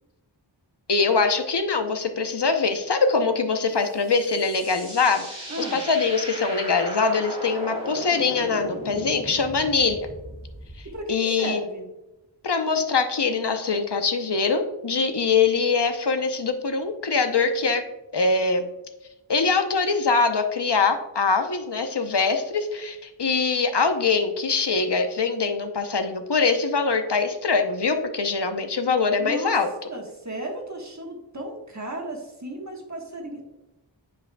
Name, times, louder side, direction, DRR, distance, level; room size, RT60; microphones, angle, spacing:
voice 1, 0.9-10.1 11.1-11.6 12.4-17.8 18.1-18.7 19.3-29.7, left 4 dB, 60° left, 7 dB, 0.8 m, -23 dB
sound 1, 3.8-11.0, right 1 dB, 15° right, 2.2 m, -37 dB
voice 2, 5.5-5.8 10.8-11.9 29.2-29.6 29.9-33.4, right 1 dB, 35° right, 0 dB, 1.4 m, -34 dB
9.6 x 5.2 x 2.3 m, 0.96 s
wide cardioid pair, 40°, 46 cm